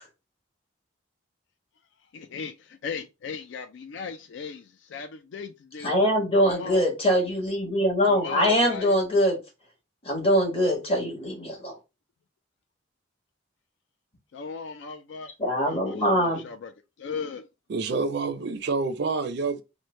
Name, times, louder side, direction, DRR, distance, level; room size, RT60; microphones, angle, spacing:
voice 1, 2.1-5.9 6.5-6.8 8.1-9.0 14.3-15.3 15.6-16.7 17.0-17.4, left 5 dB, 65° left, 0.4 m, -37 dB
voice 2, 5.8-9.4 10.0-11.8 15.4-16.5, equal, 30° left, 1.3 m, -23 dB
voice 3, 17.7-19.6, right 4 dB, 55° right, 0.4 m, -27 dB
3.1 x 2.1 x 4.1 m
head